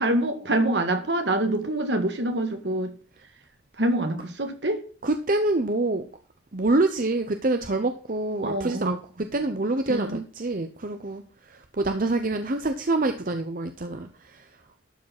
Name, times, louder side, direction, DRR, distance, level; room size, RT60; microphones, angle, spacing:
voice 1, 0.0-2.9 3.8-4.8 8.4-8.9 9.9-10.2, right 1 dB, 70° right, 7 dB, 1.9 m, -25 dB
voice 2, 5.0-6.0 6.5-11.2 11.5-14.5, right 2 dB, 45° right, 7 dB, 0.8 m, -26 dB
12.0 x 5.0 x 6.0 m, 0.40 s
head